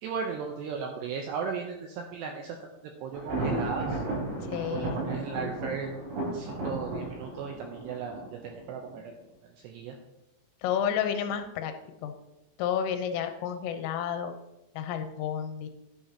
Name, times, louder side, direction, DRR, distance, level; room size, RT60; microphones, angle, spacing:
voice 1, 0.0-2.6 3.0-4.0 4.7-5.9 6.3-9.1 9.6-10.0, right 6 dB, 85° right, 2 dB, 2.5 m, -36 dB
Thunder, 3.1-9.0, right 2 dB, 60° right, 6.4 m, -34 dB
voice 2, 4.5-5.0 10.6-11.8 12.0-12.1 12.6-14.4 14.8-15.7, left 8 dB, 90° left, 7 dB, 3.4 m, -31 dB
11.0 x 10.5 x 2.9 m, 0.89 s
omnidirectional pair, 5.9 m